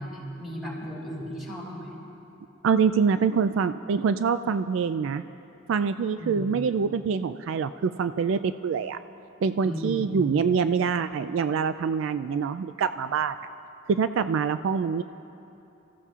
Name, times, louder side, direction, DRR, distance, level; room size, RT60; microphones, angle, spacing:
voice 1, 0.0-1.9 6.2-6.5 9.6-10.3, equal, ahead, -6 dB, 4.0 m, -35 dB
voice 2, 2.6-5.2 5.7-9.0 9.4-13.4 13.9-15.0, right 6 dB, 65° right, 11 dB, 0.3 m, -25 dB
28.0 x 15.0 x 2.4 m, 2.9 s
head